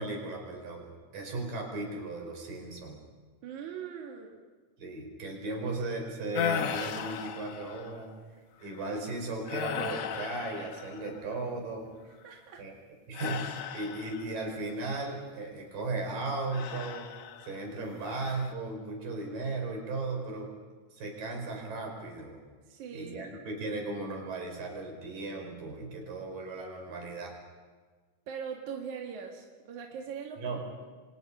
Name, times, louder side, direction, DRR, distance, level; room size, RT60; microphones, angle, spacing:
voice 1, 0.0-3.0 4.8-8.1 8.6-11.9 12.6-12.7 13.1-17.1 17.4-20.5 20.9-22.4 22.9-27.4 30.4-30.6, right 2 dB, 85° right, 1 dB, 6.7 m, -36 dB
voice 2, 3.4-4.4 12.2-12.6 22.7-23.3 28.3-30.9, right 7 dB, 65° right, 0 dB, 3.1 m, -41 dB
sound 1, 6.3-8.1 8.6-8.9 9.5-11.3 13.1-14.5 16.5-17.6 18.1-18.5, left 7 dB, 65° left, 2.2 m, -36 dB
28.5 x 25.0 x 5.6 m, 1.4 s
omnidirectional pair, 3.8 m